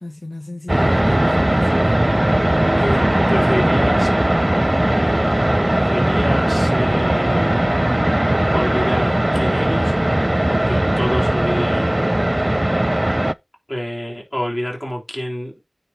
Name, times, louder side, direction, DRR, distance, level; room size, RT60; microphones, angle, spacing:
voice 1, 0.0-2.1 2.8-3.5, left 2 dB, 50° left, 1.1 m, -34 dB
sound 1, 0.7-13.3, right 1 dB, 20° right, 0.4 m, -18 dB
voice 2, 2.8-4.1 5.7-7.5 8.5-10.0 10.5-12.1 13.7-15.6, equal, 15° left, 3.5 m, -27 dB
9.3 x 4.1 x 4.2 m
wide cardioid pair, 55°, 0 cm